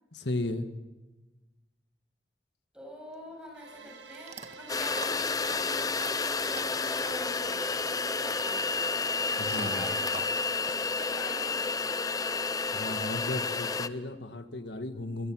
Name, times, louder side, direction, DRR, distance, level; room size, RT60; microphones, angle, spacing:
voice 1, 0.1-0.7 9.4-9.8 12.7-15.3, left 2 dB, 75° left, 9 dB, 1.6 m, -35 dB
voice 2, 2.7-5.8 6.5-7.7 8.0-8.9 9.4-10.4 10.8-11.8, equal, 5° right, 0 dB, 7.4 m, -46 dB
Chewing mastication / Dog, 3.1-12.2, right 4 dB, 40° right, 1.5 m, -49 dB
sound 1, 3.5-9.5, right 4 dB, 90° right, 2.0 m, -50 dB
sound 2, 4.7-13.9, left 4 dB, 20° left, 0.6 m, -30 dB
26.0 x 19.0 x 6.2 m, 1.2 s
head